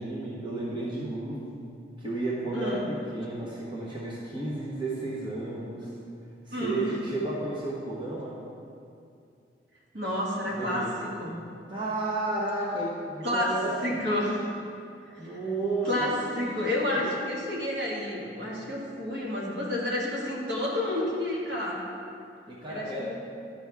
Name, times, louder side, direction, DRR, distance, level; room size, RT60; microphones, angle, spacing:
voice 1, 0.0-1.5 2.0-5.9 6.5-8.3 10.5-10.9 11.7-14.3 15.2-16.2 17.0-17.1 22.5-23.1, right 2 dB, 25° right, -6 dB, 1.2 m, -32 dB
voice 2, 2.5-2.9 6.5-6.9 9.9-11.4 13.2-13.6 13.8-14.5 15.2-15.4 15.8-21.8 22.7-23.1, left 1 dB, 65° right, -5 dB, 1.8 m, -30 dB
11.5 x 6.2 x 3.5 m, 2.5 s
head